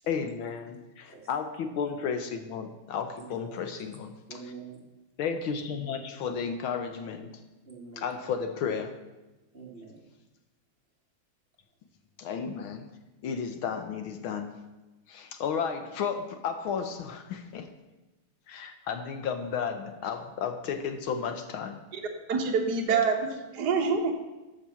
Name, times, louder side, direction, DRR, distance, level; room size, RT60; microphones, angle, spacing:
voice 1, 0.1-4.4 5.2-7.3 8.0-8.9 12.2-12.9 13.2-14.6 15.1-17.7 18.5-21.8, left 6 dB, 75° left, 7 dB, 1.7 m, -33 dB
voice 2, 3.2-3.6 4.3-4.8 7.7-8.1 9.5-10.0, right 4 dB, 25° right, -2 dB, 2.3 m, -45 dB
voice 3, 22.3-24.1, right 5 dB, 50° right, 1 dB, 1.8 m, -26 dB
13.0 x 7.6 x 5.7 m, 1.1 s
omnidirectional pair, 2.4 m